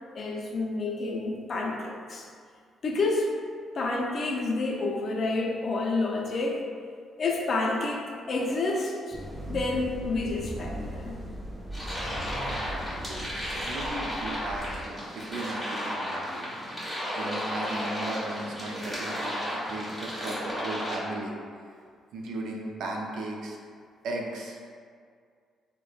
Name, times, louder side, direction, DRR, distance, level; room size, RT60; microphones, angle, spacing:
voice 1, 0.1-2.3 2.8-3.3 3.8-6.6 7.2-9.2 9.5-11.1, left 3 dB, 50° left, -1 dB, 0.4 m, -29 dB
sound 1, 9.1-14.8, equal, 15° right, 0.4 m, -38 dB
sound 2, 11.7-21.0, equal, 5° left, 1.1 m, -33 dB
voice 2, 12.7-14.7 15.1-16.4 17.1-21.3 22.1-23.6 24.0-24.6, right 2 dB, 80° right, 0 dB, 0.4 m, -36 dB
3.0 x 2.1 x 2.3 m, 2.1 s
cardioid pair, 90°, 0 cm